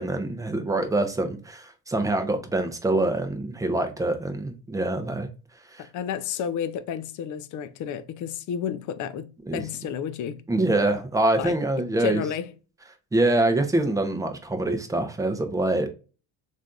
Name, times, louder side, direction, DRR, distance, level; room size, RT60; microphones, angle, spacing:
voice 1, 0.0-5.3 5.7-5.8 9.5-9.6 10.5-12.2 13.1-15.9, right 2 dB, 10° right, 0.5 m, -25 dB
voice 2, 5.8-10.4 11.4-11.6 12.0-12.5, left 8 dB, 45° left, 0.4 m, -31 dB
3.3 x 2.6 x 2.2 m
cardioid pair, 110°, 42 cm